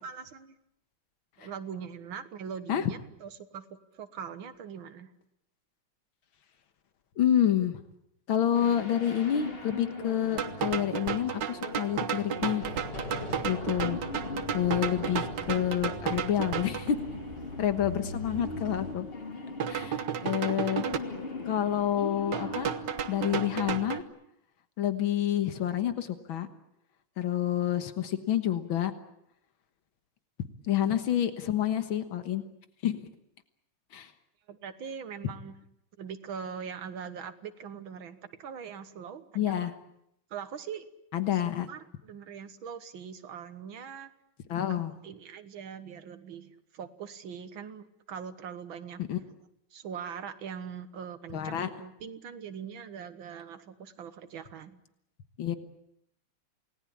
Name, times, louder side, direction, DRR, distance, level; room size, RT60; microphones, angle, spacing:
voice 1, 0.0-0.5 1.4-5.1 34.5-35.6 36.0-39.7 40.3-40.9 41.3-44.1 44.7-49.0 49.7-54.8, right 7 dB, 80° right, 11 dB, 2.1 m, -42 dB
voice 2, 7.2-7.8 8.3-12.6 13.4-14.0 14.5-17.0 17.6-19.1 19.7-20.8 21.5-22.7 23.1-24.0 24.8-26.5 27.2-28.9 30.7-32.4 32.8-33.1 33.9-34.1 39.4-39.7 41.1-41.7 44.5-44.9 49.1-49.2 51.3-51.7 55.4-55.5, left 10 dB, 90° left, 9 dB, 2.1 m, -28 dB
sound 1, 8.5-23.9, left 3 dB, 30° left, 2.6 m, -41 dB
sound 2, 10.4-16.9 19.6-21.0 22.3-24.0, right 8 dB, 65° right, 1.8 m, -33 dB
sound 3, 12.6-18.9, left 2 dB, 60° left, 8.7 m, -42 dB
28.5 x 19.0 x 8.6 m, 0.79 s
omnidirectional pair, 2.2 m